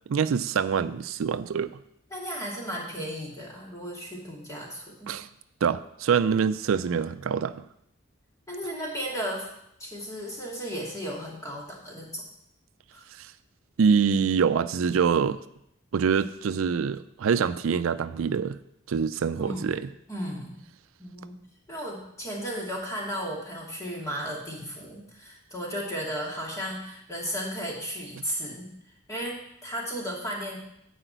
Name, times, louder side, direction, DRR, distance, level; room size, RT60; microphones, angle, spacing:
voice 1, 0.1-1.8 5.1-5.3 5.6-7.6 13.2-13.3 13.8-15.4 15.9-18.6 18.9-19.9, right 6 dB, 80° right, 13 dB, 0.4 m, -25 dB
voice 2, 2.1-5.2 8.5-9.5 9.8-12.2 12.9-13.1 19.4-19.8 20.1-20.6 21.0-21.4 21.7-28.7 29.1-30.6, equal, 15° left, -3 dB, 2.3 m, -35 dB
10.0 x 5.0 x 7.9 m, 0.78 s
head